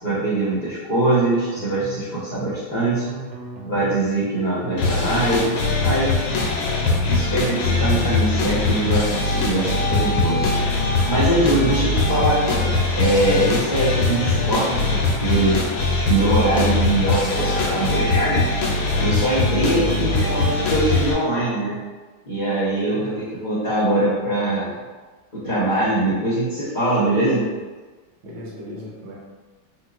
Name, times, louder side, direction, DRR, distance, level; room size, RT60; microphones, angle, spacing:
voice 1, 0.0-3.2 3.6-6.2 7.1-10.5 11.1-15.6 16.0-18.4 18.9-21.8 22.3-23.1 23.4-24.7 25.3-27.5, right 1 dB, 45° left, -13 dB, 0.5 m, -22 dB
sound 1, 1.1-2.0 2.3-2.5 2.8-4.1 5.1-6.0 6.3-6.5 6.8-8.1 9.1-10.0 10.3-10.5 10.8-12.1 13.1-14.0 14.3-14.5 14.8-16.1, right 3 dB, 80° right, 1.3 m, -36 dB
sound 2, 4.8-21.1, left 3 dB, 90° left, 1.4 m, -21 dB
voice 2, 19.7-20.2 22.8-23.2 28.2-29.1, left 1 dB, 55° right, -5 dB, 0.9 m, -35 dB
4.3 x 2.3 x 2.4 m, 1.3 s
omnidirectional pair, 2.1 m